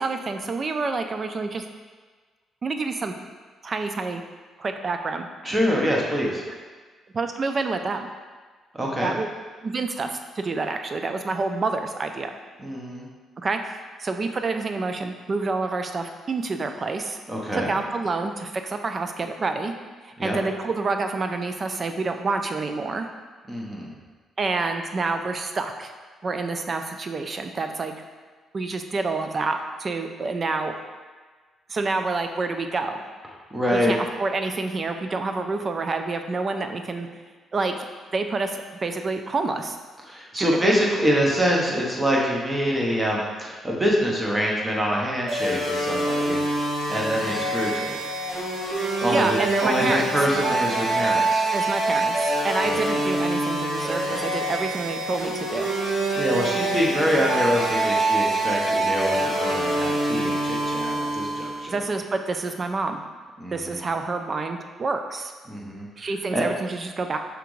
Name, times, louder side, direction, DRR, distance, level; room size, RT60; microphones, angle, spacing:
voice 1, 0.0-1.6 2.6-3.1 3.6-4.2 4.6-5.3 6.5-6.6 7.1-8.1 9.0-9.3 9.6-12.4 13.4-13.6 14.0-17.2 17.5-19.7 20.0-23.1 24.4-25.9 26.2-27.9 28.5-30.7 31.7-33.0 33.7-37.1 37.5-37.8 38.1-39.8 40.4-40.7 49.1-50.1 51.5-55.7 61.7-63.0 63.5-65.3 66.0-67.2, right 3 dB, 40° right, 6 dB, 0.4 m, -28 dB
voice 2, 5.4-6.4 8.7-9.2 12.6-13.1 17.3-17.7 20.2-20.4 23.5-23.9 33.5-33.9 40.1-46.6 46.9-48.0 49.0-51.4 52.6-52.9 56.1-61.7 63.4-63.8 65.5-65.9 66.3-66.4, equal, 20° right, -2 dB, 1.0 m, -25 dB
sound 1, 45.3-61.7, right 2 dB, 80° right, 1.4 m, -25 dB
5.0 x 3.3 x 3.1 m, 1.4 s
cardioid pair, 90°, 0 cm